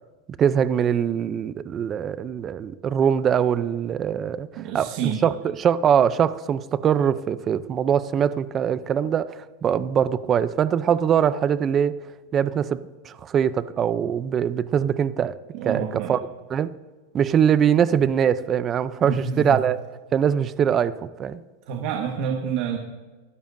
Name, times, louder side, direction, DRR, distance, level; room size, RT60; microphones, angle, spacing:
voice 1, 0.4-12.0 12.3-15.4 15.6-16.2 16.5-16.7 17.1-19.8 20.1-21.4, right 8 dB, 25° right, 15 dB, 0.5 m, -22 dB
voice 2, 4.6-5.2 15.5-16.2 19.0-19.6 21.7-22.8, right 7 dB, 55° right, 3 dB, 1.5 m, -28 dB
24.5 x 12.5 x 2.7 m, 1.3 s
supercardioid pair, 150°, 0 cm